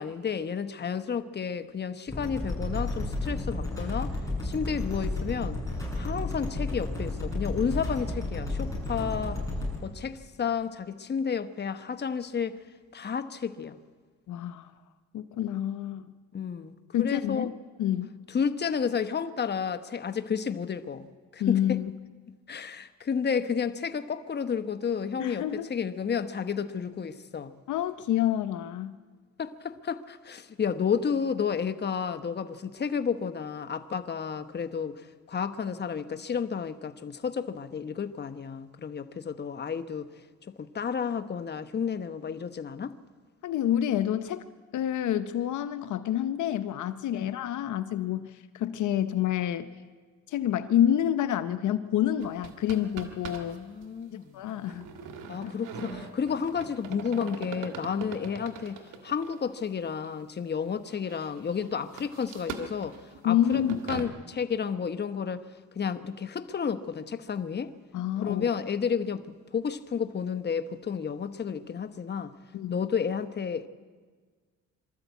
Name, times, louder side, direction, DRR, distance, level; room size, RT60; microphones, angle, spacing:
voice 1, 0.0-5.6 5.9-9.4 9.8-12.6 12.9-13.8 16.3-16.7 17.0-17.5 18.3-21.1 21.3-21.8 22.5-27.5 29.4-40.1 40.6-43.0 47.1-47.2 53.3-54.4 55.3-65.5 65.7-67.7 68.2-69.2 69.5-72.3 72.7-73.7, left 6 dB, 35° left, 1.0 m, -31 dB
sound 1, 2.1-9.7, left 2 dB, 10° left, 7.6 m, -32 dB
voice 2, 14.3-14.7 15.1-16.1 16.9-17.5 17.8-18.2 21.4-21.9 25.2-25.7 27.7-29.0 43.4-44.5 44.7-49.7 50.3-53.6 54.1-54.9 58.0-58.1 63.2-63.8 67.9-68.5 72.5-72.8, left 11 dB, 75° left, 0.8 m, -28 dB
sound 2, 52.2-53.6 53.8-53.9 54.6-59.5 60.0-60.1 60.7-64.1, right 5 dB, 90° right, 1.9 m, -41 dB
24.0 x 13.0 x 8.3 m
cardioid pair, 90°, 30 cm